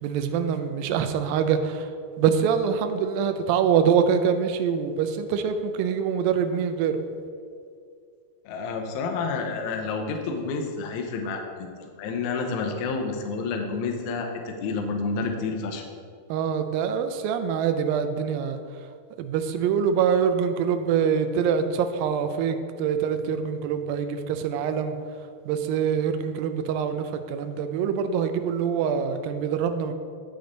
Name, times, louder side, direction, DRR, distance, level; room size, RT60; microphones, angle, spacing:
voice 1, 0.0-1.9 2.2-7.0 16.3-18.6 19.2-25.0 25.5-29.9, right 7 dB, 80° right, 8 dB, 2.1 m, -24 dB
voice 2, 8.5-15.8, left 4 dB, 85° left, 3 dB, 1.7 m, -29 dB
9.7 x 6.7 x 4.0 m, 2.2 s
omnidirectional pair, 4.6 m